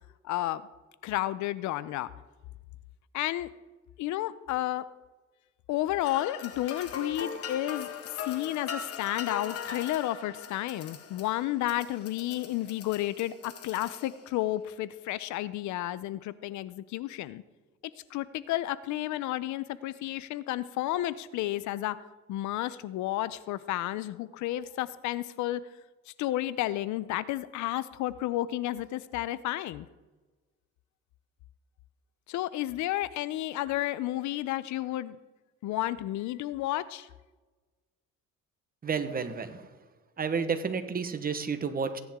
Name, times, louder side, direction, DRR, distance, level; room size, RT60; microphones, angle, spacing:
voice 1, 0.2-0.6 1.0-2.1 3.1-3.5 4.0-4.8 5.7-7.9 8.2-17.4 18.1-22.0 22.3-25.6 26.2-29.9 32.3-35.2 35.6-37.1, left 15 dB, 70° left, 17 dB, 0.6 m, -31 dB
sound 1, 6.0-14.4, left 6 dB, 50° left, 1.6 m, -40 dB
voice 2, 38.8-39.6 40.2-42.0, right 5 dB, 30° right, 9 dB, 1.1 m, -31 dB
15.5 x 10.5 x 3.6 m, 1.2 s
cardioid pair, 110°, 30 cm